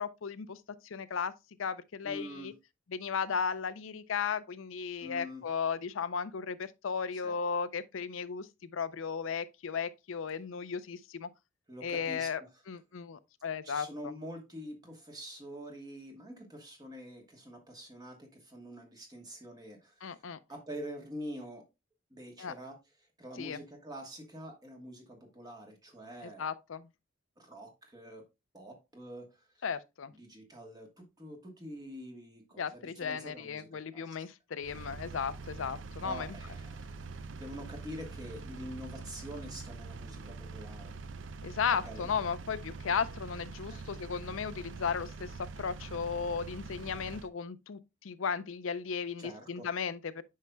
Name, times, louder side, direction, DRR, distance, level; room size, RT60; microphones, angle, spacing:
voice 1, 0.0-1.3 1.6-2.5 2.9-11.3 11.8-12.4 12.7-13.9 20.0-20.4 22.4-22.5 23.4-23.6 26.2-26.9 29.6-30.1 32.6-36.4 41.4-45.3 45.6-50.2, left 6 dB, 75° left, 0.5 m, -35 dB
voice 2, 2.0-2.5 5.0-5.4 7.1-7.4 11.7-12.6 13.6-20.2 20.5-21.7 22.1-22.8 23.2-26.5 27.4-28.2 28.5-29.6 30.1-34.3 36.0-41.0 41.8-42.1 43.7-43.9 49.2-49.7, equal, 20° right, 1.3 m, -46 dB
Engine, 34.6-47.3, right 4 dB, 65° right, 0.5 m, -44 dB
9.3 x 5.6 x 2.2 m
head